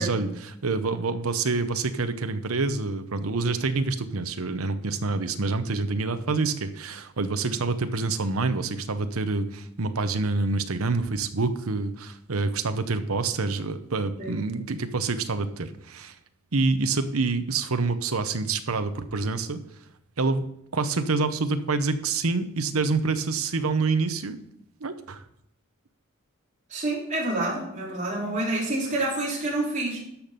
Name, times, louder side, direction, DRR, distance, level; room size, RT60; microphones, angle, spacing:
voice 1, 0.0-16.1 16.5-19.6 20.2-20.4 20.7-24.4 24.8-25.2, right 3 dB, 85° right, 10 dB, 0.9 m, -27 dB
voice 2, 26.7-30.0, right 2 dB, 35° right, -5 dB, 4.0 m, -28 dB
13.0 x 5.9 x 5.3 m, 0.76 s
head